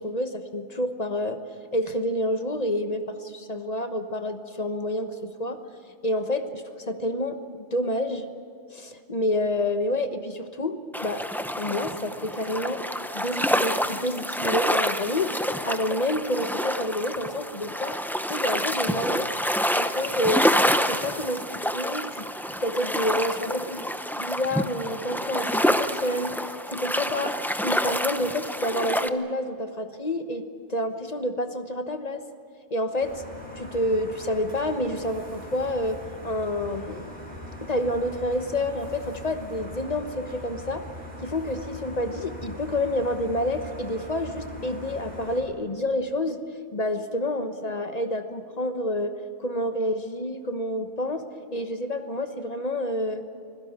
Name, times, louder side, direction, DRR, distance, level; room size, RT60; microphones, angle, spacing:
voice 1, 0.0-1.4 1.7-5.6 6.0-8.3 8.7-11.2 11.5-12.8 13.1-15.3 15.6-18.0 18.3-19.4 19.7-20.5 20.7-22.3 22.6-23.8 24.2-26.4 26.7-27.4 27.6-32.2 32.7-33.2 33.6-37.1 37.6-40.8 41.2-46.4 46.7-49.1 49.4-51.3 51.5-53.2, left 1 dB, 35° left, 7 dB, 1.3 m, -28 dB
sound 1, 10.9-29.1, equal, ahead, 0.6 m, -27 dB
sound 2, 33.0-45.4, left 1 dB, 35° right, 4.8 m, -41 dB
24.5 x 16.5 x 9.8 m, 2.1 s
omnidirectional pair, 1.1 m